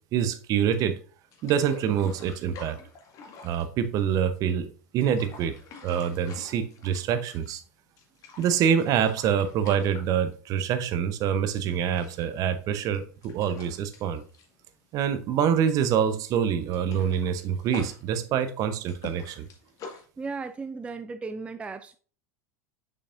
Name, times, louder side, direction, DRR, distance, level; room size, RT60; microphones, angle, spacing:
voice 1, 0.1-1.0 1.4-2.8 3.4-4.7 4.9-5.6 5.8-7.6 8.4-14.2 14.9-19.5, right 8 dB, 45° right, 0.8 m, -26 dB
sound 1, 1.3-4.4 4.8-7.7 8.0-10.8 11.1-11.3 11.7-15.5 15.7-15.9 16.3-20.0, left 4 dB, 45° left, 1.9 m, -46 dB
voice 2, 20.2-22.0, right 4 dB, 15° right, 0.4 m, -35 dB
6.4 x 5.8 x 2.6 m
hypercardioid pair, 90°, 8 cm